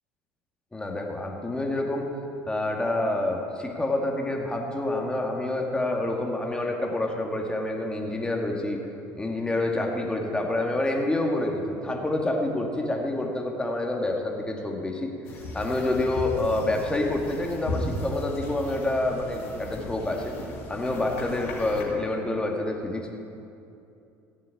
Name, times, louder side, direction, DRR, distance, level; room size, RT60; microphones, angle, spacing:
voice 1, 0.7-2.1 2.5-8.8 9.1-15.1 15.5-20.3 20.7-23.1, left 2 dB, 15° left, 1 dB, 2.2 m, -27 dB
sound 1, 15.2-21.8, left 1 dB, 80° left, 2.8 m, -36 dB
15.5 x 7.5 x 8.7 m, 2.7 s
hypercardioid pair, 75°, 7 cm